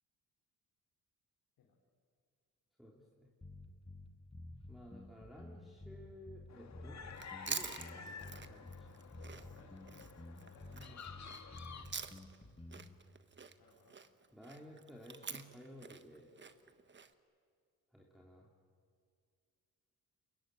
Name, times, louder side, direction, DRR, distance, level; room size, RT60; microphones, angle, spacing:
voice 1, 2.8-3.3 4.7-7.0 7.4-8.9 10.7-11.0 14.3-16.3 17.9-18.5, equal, ahead, -3 dB, 3.3 m, -55 dB
sound 1, 3.4-13.0, left 2 dB, 15° left, 2.3 m, -52 dB
sound 2, 6.5-11.9, left 6 dB, 50° left, 2.1 m, -51 dB
Chewing mastication, 7.1-12.4 12.7-17.1, right 5 dB, 30° right, 1.3 m, -47 dB
voice 2, 9.2-10.1 10.5-11.3 11.7-12.3 13.6-14.0, left 5 dB, 85° left, 0 dB, 3.8 m, -65 dB
27.0 x 22.5 x 9.3 m, 2.2 s
cardioid pair, 95°, 34 cm